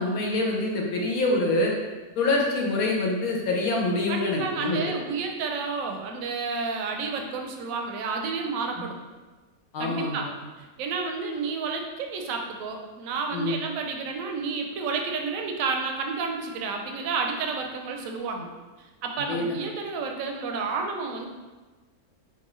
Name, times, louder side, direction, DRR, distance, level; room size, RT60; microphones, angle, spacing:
voice 1, 0.0-1.7 2.2-4.9 9.7-10.3 13.3-13.6 19.3-19.6, left 2 dB, 75° left, -1 dB, 1.3 m, -25 dB
voice 2, 4.1-9.0 9.8-10.3 10.6-18.5 18.8-21.3, right 4 dB, 75° right, 3 dB, 0.9 m, -30 dB
5.9 x 2.5 x 3.1 m, 1.3 s
omnidirectional pair, 1.5 m